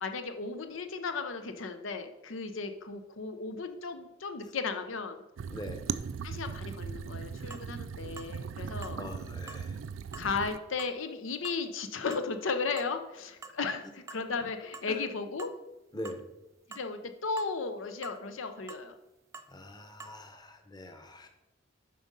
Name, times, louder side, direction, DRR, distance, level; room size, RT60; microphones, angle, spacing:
voice 1, 0.0-5.2 6.2-9.0 10.2-15.5 16.7-18.9, left 4 dB, 85° left, 8 dB, 0.7 m, -35 dB
sound 1, 5.4-10.6, right 6 dB, 85° right, 0.4 m, -38 dB
voice 2, 5.5-5.8 9.0-9.8 14.9-15.0 15.9-16.2 19.5-21.3, left 1 dB, 20° left, 6 dB, 0.9 m, -43 dB
sound 2, 7.0-7.1 7.5-7.7 8.2-8.3 8.8-9.0 9.5-9.7 10.1-10.3 10.8-11.0 11.4-11.6 12.1-12.3 12.8-13.0 13.4-13.6 14.1-14.3 14.7-14.9 15.4-15.6 16.1-16.2 16.7-16.9 17.4-17.5 18.0-18.2 18.7-18.9 19.3-19.5 20.0-20.2, right 4 dB, 15° right, 0.3 m, -47 dB
7.6 x 5.2 x 5.3 m, 0.94 s
head